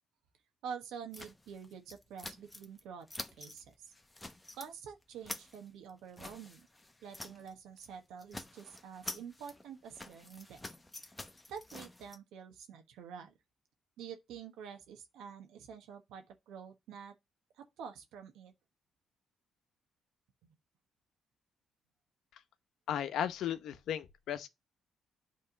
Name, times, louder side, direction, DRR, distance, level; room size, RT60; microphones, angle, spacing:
voice 1, 0.6-3.1 3.4-3.9 4.5-6.7 7.0-10.6 11.5-13.3 14.0-17.1 17.6-18.5, right 7 dB, 90° right, 1.2 m, -48 dB
sound 1, 1.1-2.8 3.1-3.6 3.9-4.7 5.0-7.5 7.8-7.9 8.2-12.2, left 2 dB, 15° left, 1.0 m, -47 dB
voice 2, 22.9-24.5, left 9 dB, 75° left, 0.8 m, -35 dB
8.6 x 3.6 x 6.6 m
cardioid pair, 90°, 0 cm